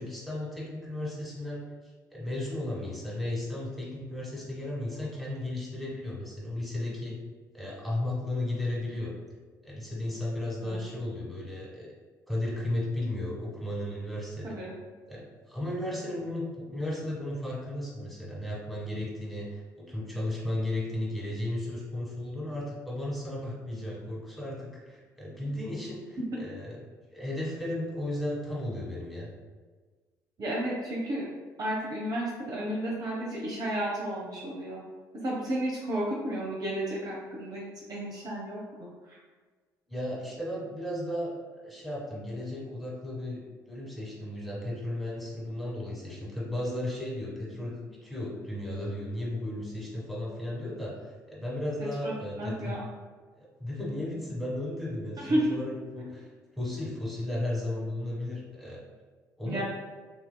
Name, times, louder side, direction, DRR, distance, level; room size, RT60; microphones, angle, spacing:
voice 1, 0.0-1.6 2.1-7.2 7.5-9.1 9.6-11.9 12.3-14.6 15.1-19.6 19.9-26.8 27.1-29.3 39.9-52.8 53.4-58.8 59.4-59.6, left 1 dB, ahead, -5 dB, 1.5 m, -35 dB
voice 2, 10.6-10.9 14.4-14.7 26.3-26.4 30.4-31.3 31.6-34.8 35.1-39.2 52.0-52.8 55.2-55.5 59.4-59.6, right 1 dB, 40° right, -4 dB, 0.8 m, -32 dB
5.6 x 2.7 x 2.2 m, 1.4 s
figure-of-eight pair, 50°, 10 cm